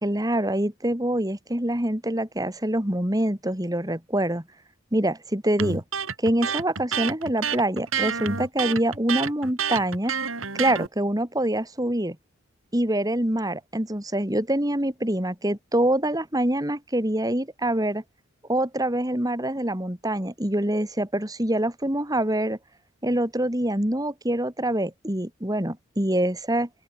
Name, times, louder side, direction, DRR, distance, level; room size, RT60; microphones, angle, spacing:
voice 1, 0.0-4.4 4.9-5.8 6.2-10.1 10.6-12.2 12.7-18.0 18.5-22.6 23.0-26.7, right 1 dB, 20° right, 2.5 m, -25 dB
Electric guitar, 5.6-10.9, right 6 dB, 85° right, 4.1 m, -28 dB
open air
head